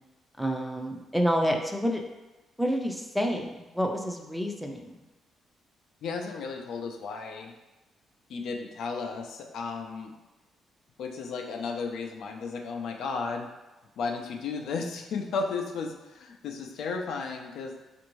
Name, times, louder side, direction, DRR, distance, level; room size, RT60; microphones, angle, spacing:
voice 1, 0.4-2.0 2.6-5.0, equal, ahead, 2 dB, 0.5 m, -28 dB
voice 2, 6.0-7.5 8.3-10.2 11.0-13.5 14.0-17.8, left 4 dB, 75° left, 3 dB, 0.4 m, -34 dB
4.3 x 2.6 x 3.0 m, 1.1 s
cardioid pair, 90°, 0 cm